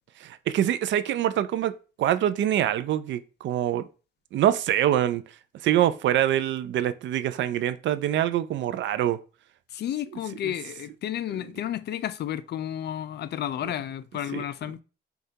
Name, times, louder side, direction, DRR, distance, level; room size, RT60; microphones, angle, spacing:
voice 1, 0.2-1.7 2.0-3.8 4.3-5.2 5.6-9.2 10.4-10.5 14.3-14.4, right 11 dB, 70° right, 0.4 m, -24 dB
voice 2, 9.7-14.8, left 11 dB, 55° left, 0.4 m, -32 dB
6.4 x 2.3 x 2.8 m
cardioid pair, 90°, 20 cm